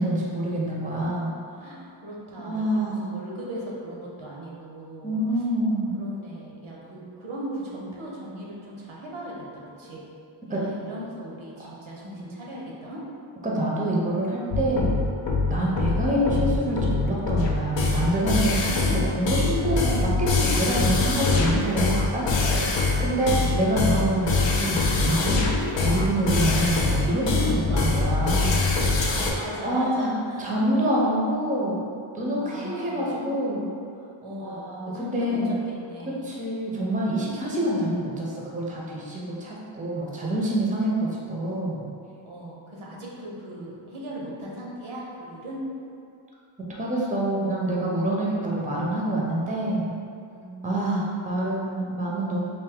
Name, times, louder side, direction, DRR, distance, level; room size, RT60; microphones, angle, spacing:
voice 1, 0.0-1.7 2.4-3.1 5.0-5.9 10.5-10.6 11.6-11.7 13.4-15.0 15.5-25.4 25.8-28.7 29.6-31.8 32.1-33.7 34.4-35.5 36.1-41.9 46.7-49.9 50.6-52.4, right 1 dB, 15° right, -4 dB, 0.6 m, -26 dB
voice 2, 1.6-5.2 5.9-10.1 10.5-13.0 15.5-15.9 23.0-23.6 27.7-27.9 28.7-29.1 29.3-30.5 32.3-33.3 34.2-36.3 42.2-45.6 50.2-51.3, right 1 dB, 80° right, -4 dB, 0.8 m, -39 dB
sound 1, 14.5-29.3, left 3 dB, 65° left, 0.6 m, -23 dB
3.4 x 2.6 x 3.6 m, 2.5 s
wide cardioid pair, 90°, 48 cm